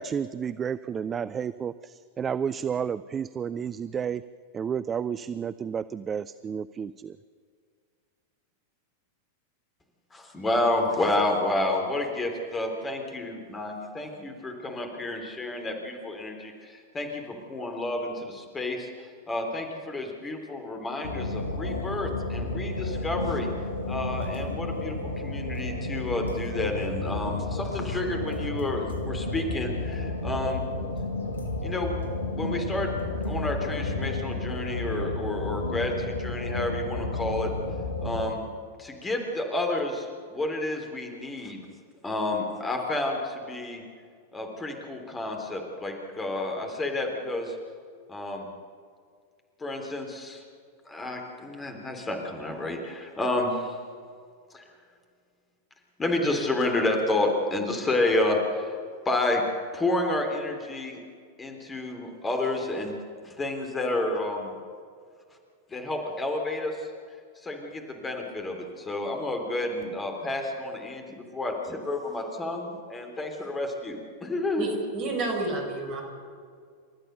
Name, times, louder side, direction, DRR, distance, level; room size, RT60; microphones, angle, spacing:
voice 1, 0.0-4.2 4.5-7.2, right 7 dB, 20° right, 15 dB, 0.4 m, -31 dB
voice 2, 10.1-23.5 23.9-30.7 31.6-32.0 32.3-32.9 33.2-37.5 38.0-38.5 38.8-41.6 42.0-43.8 44.3-47.5 48.1-48.5 49.6-50.4 50.8-53.8 54.5-54.6 56.0-58.8 59.0-59.4 59.7-61.0 61.4-63.0 63.2-64.5 65.7-66.9 67.4-74.7, left 2 dB, 15° left, 3 dB, 3.4 m, -30 dB
sound 1, 21.0-38.3, left 2 dB, 75° left, 1.9 m, -32 dB
voice 3, 74.6-76.0, right 2 dB, 35° right, 2 dB, 5.8 m, -30 dB
28.5 x 13.5 x 6.7 m, 2.1 s
figure-of-eight pair, 90°, 0 cm